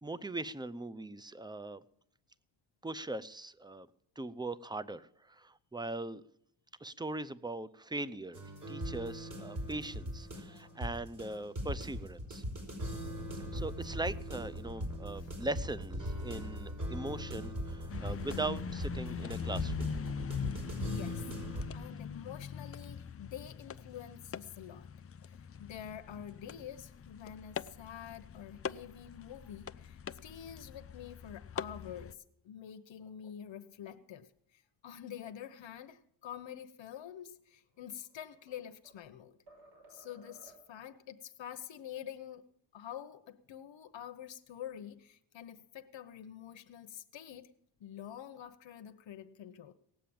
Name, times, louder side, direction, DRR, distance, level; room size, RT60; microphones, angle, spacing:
voice 1, 0.0-1.8 2.8-3.9 4.2-6.2 6.8-8.4 8.7-12.4 13.5-19.9, right 2 dB, 10° right, 0.6 m, -40 dB
sound 1, 8.3-21.6, equal, 40° right, 4.9 m, -40 dB
sound 2, 17.9-32.1, left 7 dB, 30° left, 0.5 m, -42 dB
voice 2, 20.8-21.3 21.7-24.9 25.2-39.4 39.9-42.4 42.7-47.5 47.8-49.7, left 9 dB, 70° left, 1.0 m, -47 dB
sound 3, 37.7-39.1 39.5-40.9, right 2 dB, 55° right, 6.1 m, -59 dB
18.0 x 7.6 x 8.7 m
cardioid pair, 85°, 47 cm